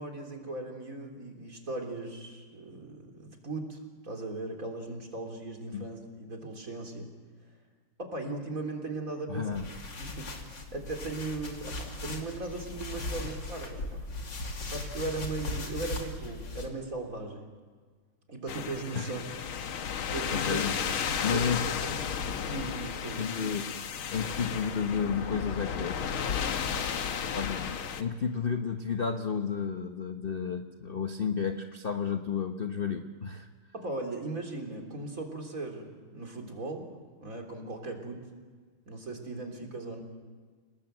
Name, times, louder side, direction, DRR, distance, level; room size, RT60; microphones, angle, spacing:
voice 1, 0.0-7.1 8.0-9.6 10.0-10.3 10.7-14.1 14.7-17.4 18.3-19.2 20.1-20.7 21.3-21.4 21.8-22.2 22.4-23.3 33.7-36.9 37.2-38.3 38.9-40.0, right 2 dB, 40° right, 3 dB, 3.9 m, -38 dB
voice 2, 9.3-9.7 18.9-19.1 20.0-20.8 21.2-21.6 23.2-23.7 24.1-25.9 27.3-33.5, left 6 dB, 40° left, 6 dB, 0.9 m, -32 dB
sound 1, 9.5-16.7, left 2 dB, 60° left, 3.3 m, -38 dB
sound 2, 18.5-28.0, left 7 dB, 80° left, 2.1 m, -33 dB
30.0 x 19.5 x 7.8 m, 1.5 s
omnidirectional pair, 2.3 m